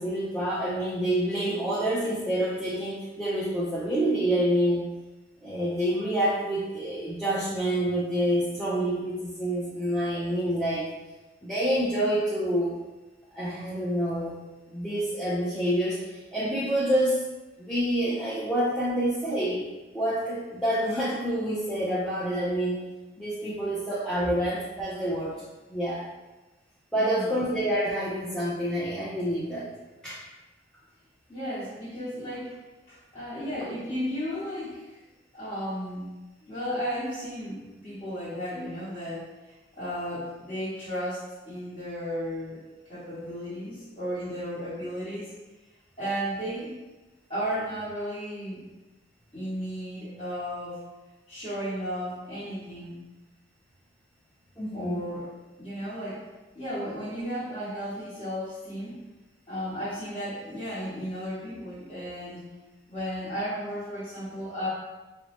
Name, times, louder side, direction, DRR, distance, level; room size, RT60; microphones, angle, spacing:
voice 1, 0.0-4.8 5.4-10.9 11.4-12.8 13.3-14.3 14.7-17.2 17.6-19.6 19.9-22.8 23.2-25.3 25.7-26.1 26.9-29.7 30.0-30.2 54.6-55.0, right 1 dB, 5° left, -9 dB, 0.5 m, -27 dB
voice 2, 26.9-27.3 31.3-32.5 32.9-35.0 35.3-36.1 36.4-42.6 42.9-45.3 46.0-46.7 47.3-48.7 49.3-50.8 51.3-53.0 54.7-55.3 55.6-56.2 56.5-59.0 59.5-62.4 62.9-64.7, equal, 30° left, -13 dB, 1.0 m, -34 dB
4.4 x 2.0 x 2.8 m, 1.1 s
head